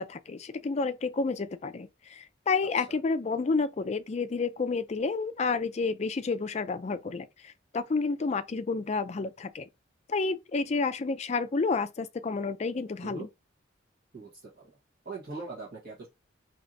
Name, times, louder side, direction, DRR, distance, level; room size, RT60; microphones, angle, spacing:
voice 1, 0.0-9.7 10.1-13.3, left 4 dB, 35° left, 0.3 m, -30 dB
voice 2, 14.1-14.7 15.0-16.1, right 3 dB, 55° right, 1.4 m, -41 dB
4.5 x 2.9 x 2.6 m
head